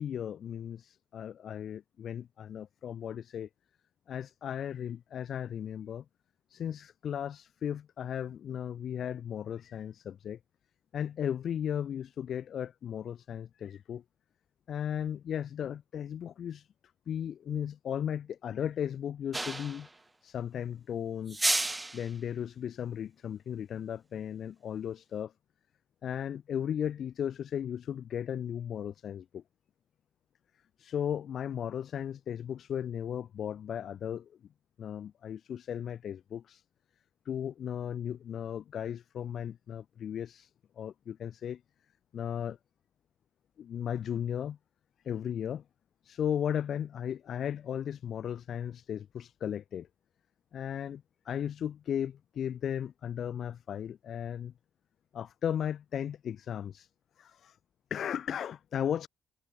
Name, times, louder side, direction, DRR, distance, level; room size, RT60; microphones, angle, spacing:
voice 1, 0.0-3.5 4.1-6.0 6.5-10.4 10.9-14.0 14.7-16.7 17.1-19.9 20.2-21.5 21.9-25.3 26.0-29.4 30.8-34.3 34.8-36.6 37.2-40.5 40.8-41.6 42.1-42.6 43.6-44.6 45.0-45.6 46.0-49.9 50.5-54.5 55.1-56.9 57.2-57.6 57.9-59.1, left 9 dB, 60° left, 1.4 m, -36 dB
sound 1, 19.3-19.9 21.3-22.1, right 2 dB, 15° right, 1.1 m, -31 dB
cardioid pair, 90°, 0 cm